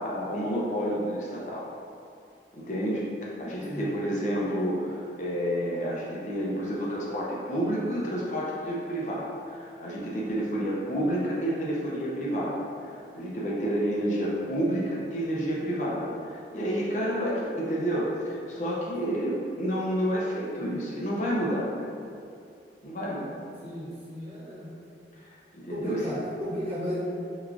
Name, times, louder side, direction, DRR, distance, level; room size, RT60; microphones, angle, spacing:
voice 1, 0.0-1.7 2.5-21.9 22.8-23.4 25.2-26.0, equal, 45° left, -5 dB, 0.5 m, -30 dB
voice 2, 23.6-24.7 25.7-27.0, equal, 35° right, -10 dB, 0.9 m, -34 dB
4.6 x 2.3 x 2.4 m, 2.4 s
head